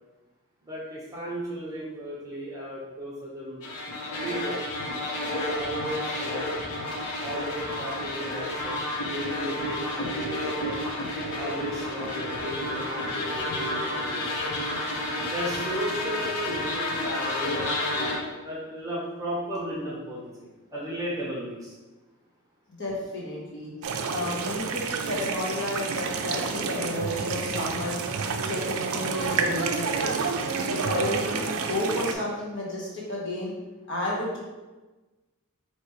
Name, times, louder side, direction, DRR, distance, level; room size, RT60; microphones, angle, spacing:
voice 1, 0.6-3.6 4.1-4.6 5.5-6.5 7.2-10.8 11.3-14.4 15.2-21.8, equal, 15° right, -6 dB, 0.9 m, -35 dB
sound 1, 3.6-18.2, left 1 dB, 85° left, 0.9 m, -30 dB
voice 2, 22.8-23.7 24.1-28.0 28.4-30.3 30.7-33.5 33.9-34.4, left 1 dB, 55° left, -5 dB, 1.3 m, -32 dB
sound 2, 23.8-32.1, right 5 dB, 70° right, 0.4 m, -29 dB
4.6 x 3.0 x 3.1 m, 1.2 s
head